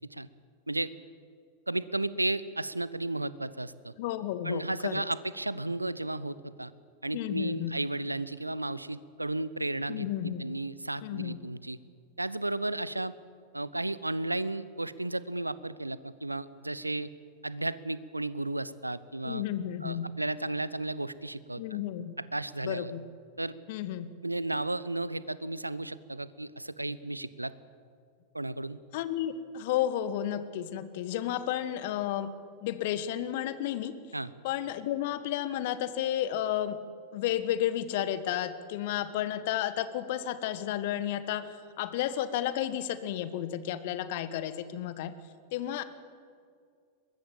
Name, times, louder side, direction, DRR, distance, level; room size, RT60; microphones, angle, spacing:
voice 1, 1.7-3.9 4.4-6.7 7.0-11.8 12.2-13.1 13.5-17.1 17.4-19.4 19.8-21.8 22.3-22.9 23.4-23.5 24.2-27.5 28.3-28.8 34.1-34.3, right 2 dB, 85° right, 17 dB, 0.8 m, -33 dB
voice 2, 4.0-5.0 7.1-7.8 9.9-10.5 11.0-11.5 19.2-20.1 21.6-22.2 22.6-23.0 23.7-24.1 28.9-32.3 32.6-33.9 34.4-36.8 37.1-45.1 45.5-45.8, left 11 dB, 50° left, 13 dB, 1.5 m, -32 dB
23.0 x 21.0 x 7.3 m, 2.2 s
figure-of-eight pair, 90°, 0 cm